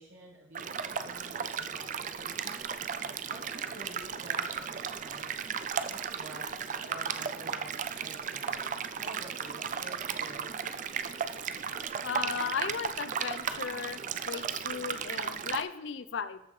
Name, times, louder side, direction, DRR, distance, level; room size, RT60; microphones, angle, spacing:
voice 1, 0.0-2.7 3.3-5.3 5.9-10.8, right 2 dB, 65° right, -5 dB, 1.3 m, -50 dB
sound 1, 0.5-15.6, right 7 dB, 40° right, 0.3 m, -35 dB
voice 2, 12.0-14.0 14.3-16.4, left 6 dB, 70° left, 13 dB, 0.5 m, -36 dB
13.5 x 5.6 x 3.2 m, 0.86 s
head